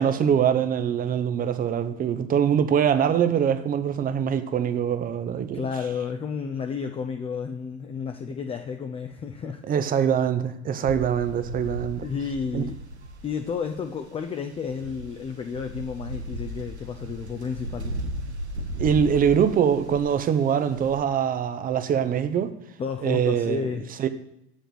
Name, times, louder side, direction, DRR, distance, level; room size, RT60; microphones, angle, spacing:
voice 1, 0.0-5.6 9.7-12.0 12.5-12.6 18.8-22.5 23.0-23.7 24.0-24.1, right 8 dB, 25° right, 0.7 m, -23 dB
voice 2, 5.5-9.6 12.0-12.8 13.2-17.9 22.8-23.8, left 6 dB, 20° left, 0.5 m, -31 dB
sound 1, 10.8-21.0, right 1 dB, 85° right, 0.9 m, -36 dB
7.4 x 5.1 x 6.8 m
figure-of-eight pair, 75°, 32 cm